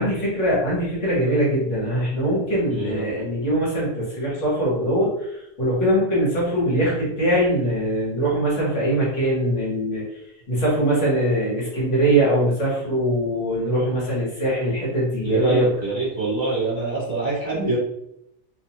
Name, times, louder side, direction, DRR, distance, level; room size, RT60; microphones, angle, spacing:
voice 1, 0.0-10.0 10.5-15.7, right 1 dB, 60° left, -5 dB, 1.2 m, -22 dB
voice 2, 2.7-3.1 15.2-17.8, right 3 dB, 30° right, -10 dB, 1.2 m, -25 dB
2.6 x 2.2 x 2.8 m, 0.79 s
omnidirectional pair, 1.4 m